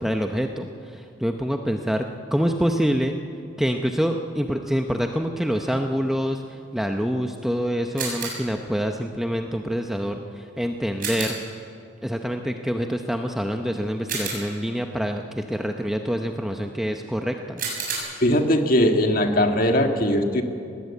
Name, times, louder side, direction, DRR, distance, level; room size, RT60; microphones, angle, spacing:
voice 1, 0.0-3.1 3.6-11.4 12.0-17.6, equal, ahead, 4 dB, 0.7 m, -26 dB
sound 1, 8.0-8.6 11.0-11.5 14.1-14.7 17.6-18.0, right 5 dB, 45° right, 7.0 m, -30 dB
voice 2, 18.2-20.4, left 1 dB, 45° left, 5 dB, 1.7 m, -20 dB
20.0 x 18.0 x 8.4 m, 2.6 s
head